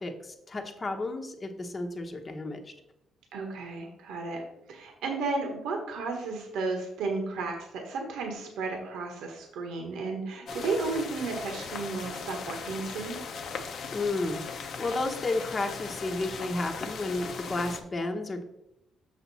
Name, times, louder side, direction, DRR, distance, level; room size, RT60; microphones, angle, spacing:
voice 1, 0.0-2.7 13.9-18.4, left 2 dB, 30° left, 4 dB, 1.0 m, -32 dB
voice 2, 3.3-4.4 4.7-13.2, right 3 dB, 85° right, 2 dB, 1.3 m, -33 dB
sound 1, 10.5-17.8, left 5 dB, 65° left, 0.8 m, -38 dB
6.6 x 5.9 x 4.1 m, 0.85 s
cardioid pair, 90°, 0 cm